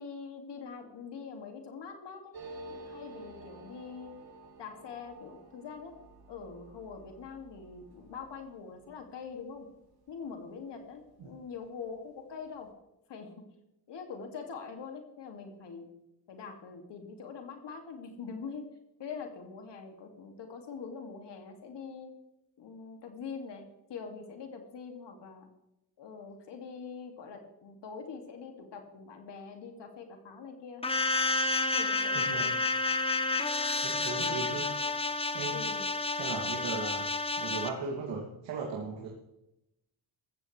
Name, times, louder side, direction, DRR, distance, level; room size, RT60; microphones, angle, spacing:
voice 1, 0.0-2.3 2.7-4.1 4.6-5.9 6.3-9.7 10.1-12.7 13.1-13.5 13.9-15.9 16.3-18.6 19.0-22.1 22.6-23.6 23.9-25.5 26.0-30.8 31.7-32.5 35.4-35.8, left 5 dB, 70° left, 4 dB, 2.4 m, -44 dB
sound 1, 2.3-11.5 11.8-11.9 12.1-12.7, right 2 dB, 55° right, 3.9 m, -52 dB
sound 2, 30.8-37.7, left 3 dB, 15° left, 1.0 m, -30 dB
voice 2, 32.1-32.5 33.8-34.7 35.3-35.6 36.1-37.1 37.4-39.1, right 4 dB, 80° right, -2 dB, 2.6 m, -37 dB
14.5 x 14.5 x 3.3 m, 0.88 s
cardioid pair, 100°, 44 cm